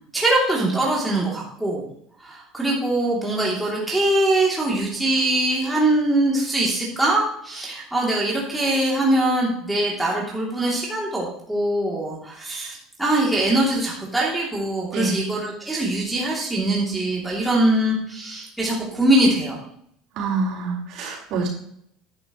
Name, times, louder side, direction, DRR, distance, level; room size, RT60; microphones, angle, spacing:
voice 1, 0.1-1.8 2.2-19.6, right 1 dB, 5° right, -5 dB, 2.8 m, -22 dB
voice 2, 20.1-21.5, right 4 dB, 55° right, -3 dB, 4.1 m, -26 dB
10.5 x 10.5 x 3.1 m, 0.69 s
cardioid pair, 140°, 0 cm